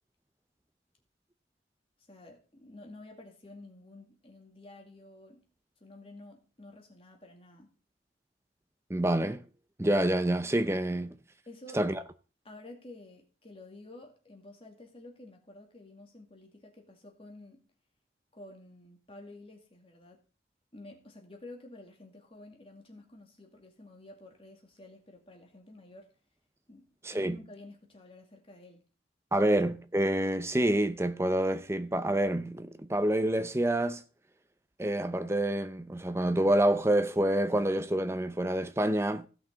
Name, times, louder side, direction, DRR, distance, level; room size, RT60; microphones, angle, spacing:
voice 1, 2.1-5.5 5.8-7.7 11.5-11.8 12.4-17.6 18.3-20.2 20.7-26.1 26.7-28.8 29.4-29.5, left 2 dB, 30° left, 2.3 m, -51 dB
voice 2, 8.9-9.4 9.8-11.1 11.7-12.0 27.0-27.4 29.3-34.0 34.8-39.3, right 1 dB, 15° right, 0.6 m, -27 dB
16.5 x 5.8 x 3.9 m
head